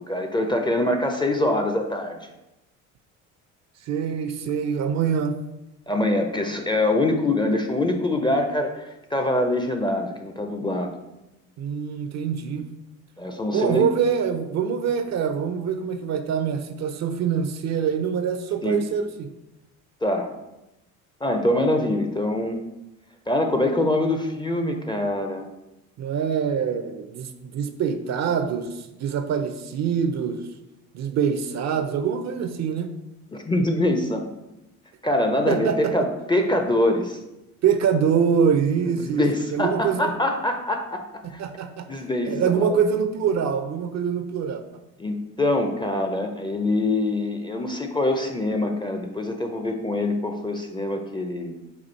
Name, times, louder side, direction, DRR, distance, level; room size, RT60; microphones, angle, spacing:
voice 1, 0.0-2.2 5.9-11.0 13.2-13.8 18.6-18.8 20.0-20.3 21.2-22.6 23.3-25.4 33.3-34.3 35.0-37.2 38.9-41.0 41.9-42.8 45.0-51.5, left 1 dB, 10° left, 4 dB, 0.4 m, -24 dB
voice 2, 3.9-5.4 11.6-12.7 13.5-19.3 26.0-30.5 30.9-32.9 35.5-35.9 37.6-39.2 39.5-40.1 41.4-41.9 42.2-44.6, right 7 dB, 45° right, 9 dB, 0.5 m, -24 dB
4.3 x 2.4 x 4.4 m, 0.95 s
hypercardioid pair, 65°, 40 cm